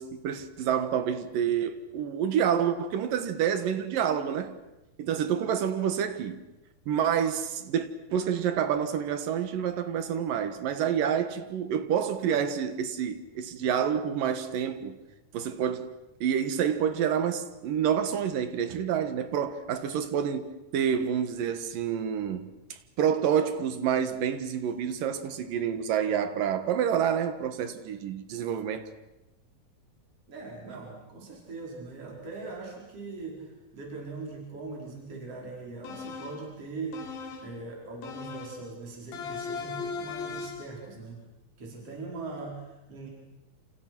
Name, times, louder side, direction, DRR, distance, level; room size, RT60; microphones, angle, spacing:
voice 1, 0.0-4.5 5.0-6.5 6.9-15.0 15.3-15.9 16.2-28.9, right 8 dB, 70° right, 3.1 m, -28 dB
voice 2, 30.3-37.0 37.4-41.2 41.6-43.1, right 3 dB, 40° right, 5.8 m, -41 dB
sound 1, 35.8-36.5 36.9-37.6 38.0-38.7 39.1-40.8, left 5 dB, 75° left, 4.0 m, -38 dB
28.5 x 28.0 x 6.2 m
omnidirectional pair, 4.2 m